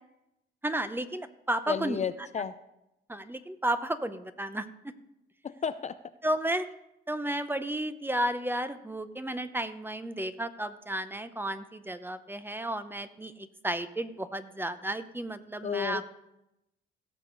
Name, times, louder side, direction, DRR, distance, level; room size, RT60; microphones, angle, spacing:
voice 1, 0.6-2.0 3.1-4.9 6.2-6.7 7.1-16.0, right 1 dB, 10° right, 11 dB, 0.7 m, -33 dB
voice 2, 1.7-2.6 5.4-6.0 15.6-16.0, left 7 dB, 35° left, 12 dB, 0.5 m, -32 dB
17.0 x 6.8 x 4.0 m, 0.87 s
cardioid pair, 90°, 20 cm